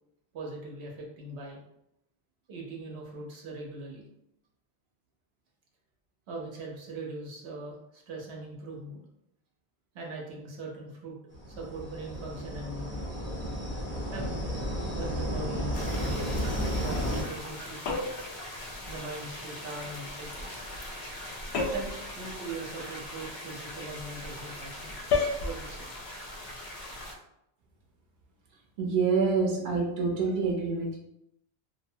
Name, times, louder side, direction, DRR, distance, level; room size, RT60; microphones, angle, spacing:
voice 1, 0.3-1.6 2.5-4.0 6.3-9.0 9.9-11.2 11.5-13.1 14.1-14.4 14.9-15.8 16.1-18.1 18.9-20.6 21.7-24.9 25.4-25.9 26.5-27.1, right 2 dB, 80° right, -1 dB, 0.9 m, -41 dB
sound 1, 11.3-17.2, equal, 15° left, 0.6 m, -32 dB
sound 2, 15.7-27.2, left 1 dB, 60° left, 0.6 m, -41 dB
sound 3, 17.8-18.3 21.5-22.0 25.1-25.4, left 4 dB, 85° left, 0.9 m, -28 dB
voice 2, 28.8-31.0, right 4 dB, 55° right, -1 dB, 0.7 m, -27 dB
2.7 x 2.0 x 2.6 m, 0.80 s
omnidirectional pair, 1.1 m